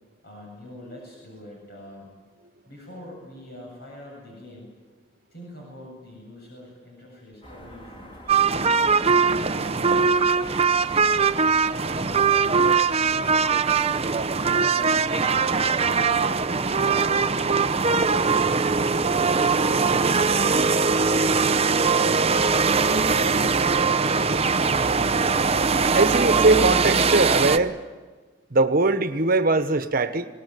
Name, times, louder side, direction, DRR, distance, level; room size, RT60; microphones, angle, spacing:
voice 1, 0.2-2.1 2.7-4.7 5.3-8.1 8.6-11.4 12.0-13.9 14.3-16.5 17.4-17.7 18.1-19.3 20.1-21.4, left 1 dB, 60° left, -1 dB, 7.9 m, -44 dB
sound 1, 7.4-25.9, equal, 30° left, 4.3 m, -45 dB
sound 2, 8.3-27.6, right 5 dB, 35° right, 0.7 m, -21 dB
voice 2, 25.9-27.8 28.5-30.3, right 3 dB, 50° right, 9 dB, 1.4 m, -20 dB
24.5 x 19.5 x 9.6 m, 1.3 s
head